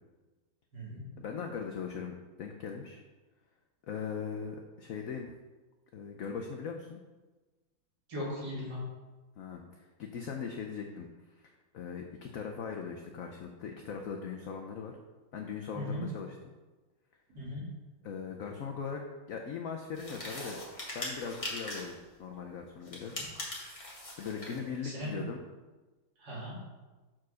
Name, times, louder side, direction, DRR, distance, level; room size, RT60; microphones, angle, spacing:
voice 1, 1.2-3.0 3.9-5.3 5.9-7.0 9.4-11.1 11.4-15.0 15.3-16.3 18.0-19.0 19.3-20.6 20.9-23.1 24.2-25.4, left 6 dB, 75° left, 2 dB, 0.7 m, -40 dB
voice 2, 8.1-8.8 15.7-16.0 17.3-17.6 24.8-25.2 26.2-26.6, left 1 dB, 50° right, -7 dB, 3.0 m, -38 dB
sound 1, 19.9-22.0 22.8-24.6, left 1 dB, 20° left, 1.5 m, -41 dB
6.0 x 4.7 x 6.2 m, 1.2 s
omnidirectional pair, 2.2 m